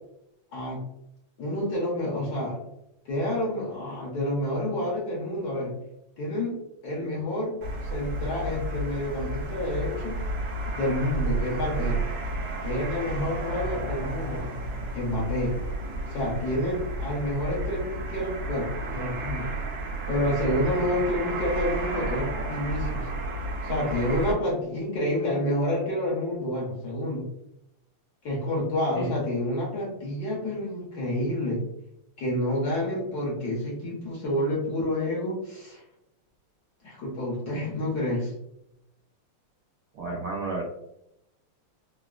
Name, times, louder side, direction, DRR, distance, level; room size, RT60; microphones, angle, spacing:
voice 1, 1.4-2.6 3.0-5.7 6.2-6.6 6.8-7.5 7.8-10.2 10.7-12.1 12.6-14.5 14.9-15.5 16.1-19.5 20.1-23.1 23.6-27.2 28.2-31.6 32.2-35.8 36.8-38.3, left 1 dB, 60° left, -4 dB, 1.1 m, -29 dB
sound 1, 7.6-24.3, right 2 dB, 60° right, 1.2 m, -32 dB
voice 2, 39.9-40.6, right 3 dB, 80° right, -3 dB, 0.9 m, -32 dB
3.8 x 2.0 x 2.3 m, 0.81 s
omnidirectional pair, 2.4 m